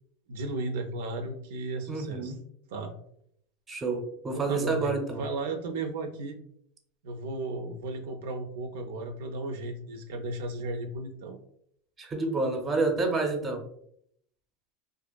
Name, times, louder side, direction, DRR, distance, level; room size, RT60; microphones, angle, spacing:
voice 1, 0.3-2.3 2.7-2.9 4.3-6.4 7.0-11.4, right 2 dB, 80° right, 5 dB, 0.3 m, -35 dB
voice 2, 1.9-2.4 3.7-5.2 12.0-13.6, right 3 dB, 20° right, 3 dB, 0.6 m, -29 dB
2.4 x 2.4 x 2.2 m, 0.69 s
supercardioid pair, 115°, 0 cm